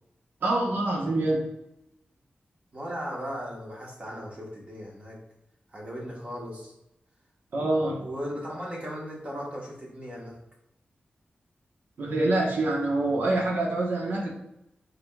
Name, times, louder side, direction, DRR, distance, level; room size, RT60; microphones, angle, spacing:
voice 1, 0.4-1.4 7.5-8.0 12.0-14.3, right 2 dB, 70° right, -2 dB, 1.1 m, -25 dB
voice 2, 2.7-5.2 5.7-6.7 8.0-10.4, equal, 35° right, -3 dB, 1.4 m, -37 dB
5.1 x 3.9 x 2.3 m, 0.84 s
wide cardioid pair, 135°, 4 cm